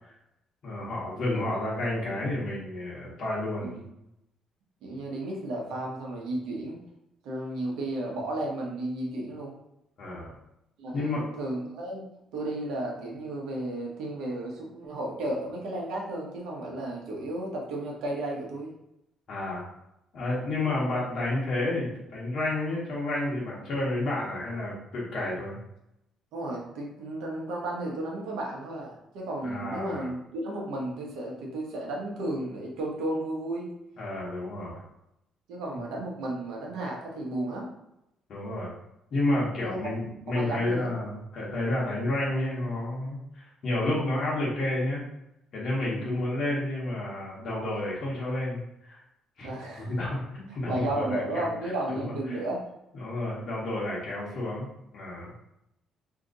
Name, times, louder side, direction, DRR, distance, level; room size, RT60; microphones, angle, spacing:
voice 1, 0.6-3.8 10.0-10.3 10.9-11.2 19.3-19.6 20.1-25.6 29.4-30.1 34.0-34.8 38.3-38.7 39.1-45.0 45.5-48.6 48.9-49.0 49.4-49.5 49.8-51.5 51.9-52.4 52.9-55.3, left 1 dB, 45° left, -6 dB, 0.9 m, -30 dB
voice 2, 4.8-6.8 7.2-9.5 10.8-12.1 12.3-18.7 20.4-20.6 26.3-33.7 35.5-37.7 39.6-39.9 40.3-40.9 45.9-46.2 49.4-49.9 50.5-52.6, right 1 dB, 90° right, -2 dB, 1.0 m, -33 dB
2.8 x 2.5 x 3.8 m, 0.83 s
cardioid pair, 160°, 0 cm